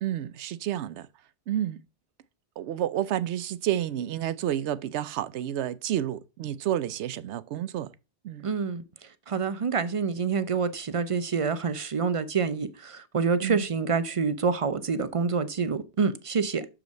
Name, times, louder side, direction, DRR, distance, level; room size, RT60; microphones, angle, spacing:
voice 1, 0.0-1.1 1.5-1.8 2.6-7.9 8.2-8.5 13.4-13.6, right 11 dB, 80° right, 0.9 m, -30 dB
voice 2, 8.4-16.7, right 5 dB, 40° right, 0.5 m, -27 dB
6.8 x 5.0 x 5.1 m
omnidirectional pair, 1.2 m